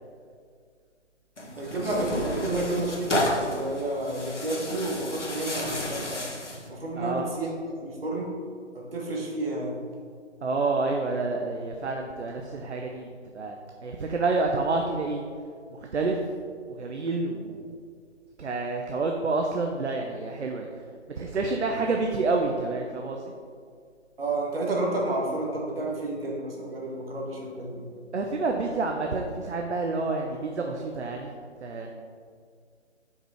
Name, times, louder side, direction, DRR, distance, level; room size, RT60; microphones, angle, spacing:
Tearing, 1.4-6.7, left 1 dB, 75° left, 1.4 m, -32 dB
voice 1, 1.6-6.2 6.7-8.3 8.7-9.8 24.2-27.8, right 2 dB, 50° right, -2 dB, 1.7 m, -30 dB
voice 2, 7.0-7.3 10.4-13.1 13.3-13.6 13.8-15.2 15.7-16.2 16.7-17.7 18.4-20.7 21.2-23.3 28.1-31.3 31.6-31.9, right 3 dB, 65° right, 2 dB, 0.7 m, -28 dB
5.5 x 4.8 x 4.8 m, 2.1 s
figure-of-eight pair, 150°, 36 cm